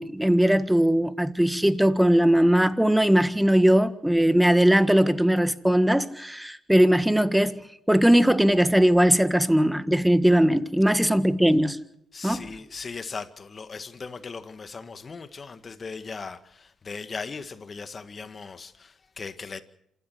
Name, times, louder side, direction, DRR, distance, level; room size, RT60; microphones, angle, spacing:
voice 1, 0.0-7.6 7.9-11.8 12.2-12.4, equal, 5° right, 1.6 m, -20 dB
voice 2, 12.1-19.6, left 4 dB, 40° left, 1.8 m, -38 dB
27.0 x 13.0 x 8.1 m
supercardioid pair, 65°, 0 cm